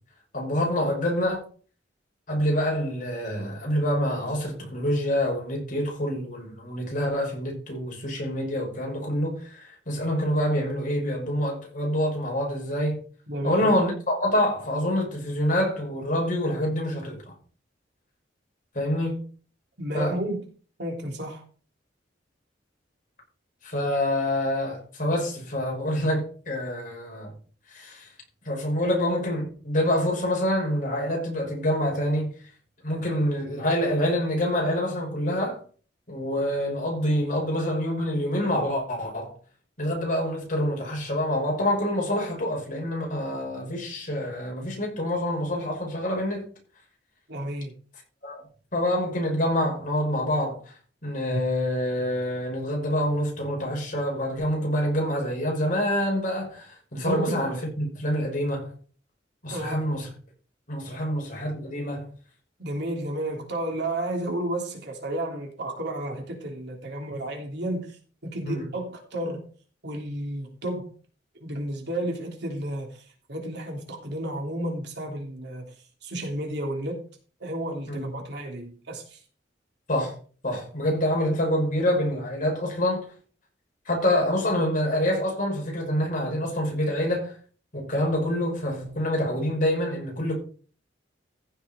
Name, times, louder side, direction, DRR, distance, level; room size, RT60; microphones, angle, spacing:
voice 1, 0.3-1.4 2.3-13.0 13.4-17.3 18.7-19.2 19.9-20.1 23.6-27.3 27.7-28.1 28.5-32.3 32.8-35.6 36.1-39.3 39.8-46.5 48.2-48.4 48.7-50.6 51.0-58.7 59.4-60.1 60.7-62.1 68.4-68.7 77.9-78.1 79.9-80.1 80.4-83.1 83.9-87.3 87.7-90.4, left 1 dB, 45° left, 5.7 m, -26 dB
voice 2, 13.3-13.7 19.8-20.5 20.8-21.4 47.3-47.7 51.3-51.4 56.9-57.4 59.5-59.8 60.9-61.1 62.6-68.0 68.2-69.4 69.8-70.9 71.4-73.0 73.3-75.7 76.0-77.0 77.4-79.2, right 1 dB, 65° right, 3.3 m, -32 dB
15.0 x 6.5 x 4.4 m
head